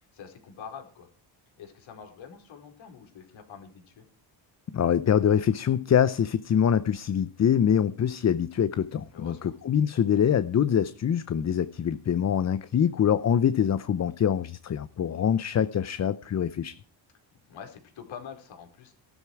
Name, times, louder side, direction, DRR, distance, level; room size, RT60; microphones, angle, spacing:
voice 1, 0.1-1.1 1.6-4.0 9.1-9.6 17.5-18.9, left 7 dB, 70° left, 4.8 m, -45 dB
voice 2, 4.7-16.7, left 8 dB, 35° left, 0.7 m, -24 dB
16.5 x 13.0 x 4.8 m
cardioid pair, 115°, 47 cm